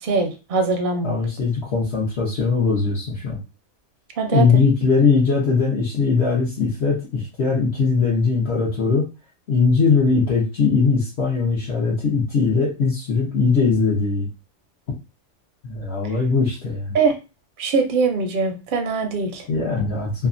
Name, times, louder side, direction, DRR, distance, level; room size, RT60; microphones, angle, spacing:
voice 1, 0.0-1.2 4.2-4.5 16.0-16.1 16.9-17.2 17.6-19.5, right 4 dB, 55° right, 4 dB, 0.6 m, -22 dB
voice 2, 1.0-3.4 4.3-9.0 9.5-14.3 15.6-16.9 19.5-20.3, left 4 dB, 60° left, -5 dB, 0.9 m, -20 dB
2.7 x 2.2 x 2.5 m, 0.30 s
omnidirectional pair, 1.3 m